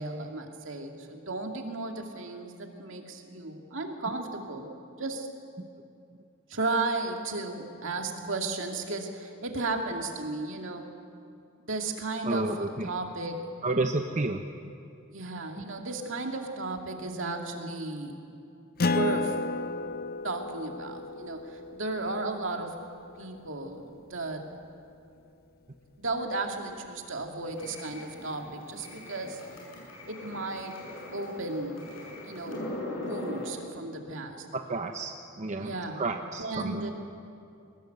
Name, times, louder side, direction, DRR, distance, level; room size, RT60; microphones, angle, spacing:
voice 1, 0.0-4.7 5.0-5.3 6.5-10.9 11.6-13.4 15.1-18.2 18.8-19.4 20.2-22.8 23.2-24.5 26.0-29.4 30.1-30.8 31.1-31.8 32.2-32.7 33.0-34.5 35.6-36.0 36.4-36.9, right 2 dB, 65° right, 3 dB, 2.4 m, -34 dB
voice 2, 12.2-12.9 13.6-14.4 15.6-15.7 18.9-19.0 34.7-36.9, right 2 dB, 35° right, 4 dB, 0.9 m, -31 dB
Acoustic guitar, 18.8-23.8, left 3 dB, 45° left, 0.6 m, -33 dB
sound 1, 27.4-33.5, left 1 dB, 70° left, 7.0 m, -40 dB
21.5 x 19.5 x 8.0 m, 2.6 s
head